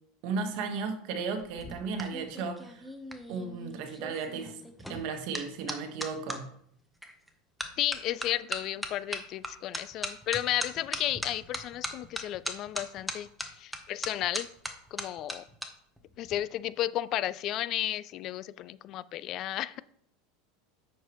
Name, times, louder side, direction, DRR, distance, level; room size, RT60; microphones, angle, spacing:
voice 1, 0.2-2.8 3.3-4.6 4.9-6.5, right 5 dB, 60° right, 6 dB, 1.3 m, -35 dB
sound 1, 1.4-6.4 7.0-7.3 7.6-15.7 16.0-16.3, equal, ahead, 0.9 m, -38 dB
voice 2, 7.8-13.3 13.6-14.5 14.9-15.4 16.2-19.8, left 13 dB, 45° left, 18 dB, 0.3 m, -33 dB
9.0 x 6.6 x 3.1 m, 0.68 s
supercardioid pair, 125°, 0 cm